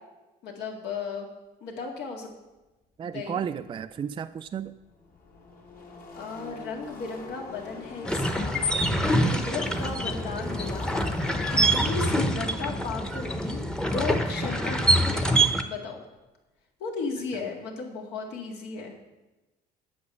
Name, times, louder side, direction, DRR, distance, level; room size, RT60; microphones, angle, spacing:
voice 1, 0.4-1.3 1.6-2.3 3.1-3.4 6.2-8.6 9.3-10.9 11.5-16.0 16.8-19.0, left 4 dB, 80° left, 1 dB, 2.0 m, -35 dB
voice 2, 3.0-4.7 9.2-9.5, right 8 dB, 30° right, 9 dB, 0.3 m, -33 dB
Car passing by / Race car auto racing, 4.5-14.9, left 3 dB, 60° left, 2.6 m, -44 dB
sound 1, 8.0-15.6, right 1 dB, 5° left, 0.8 m, -25 dB
8.6 x 6.0 x 6.6 m, 1.1 s
cardioid pair, 110°, 17 cm